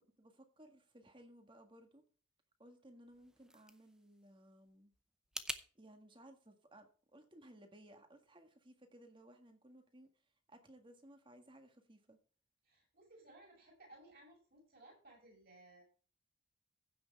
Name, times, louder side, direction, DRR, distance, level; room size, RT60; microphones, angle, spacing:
voice 1, 0.2-2.0 2.6-4.9 5.8-12.2, right 1 dB, 25° right, 6 dB, 1.7 m, -60 dB
sound 1, 3.0-5.7, right 1 dB, 5° right, 0.6 m, -48 dB
voice 2, 12.6-15.8, right 2 dB, 45° right, -1 dB, 6.4 m, -60 dB
15.5 x 6.3 x 4.6 m, 0.40 s
head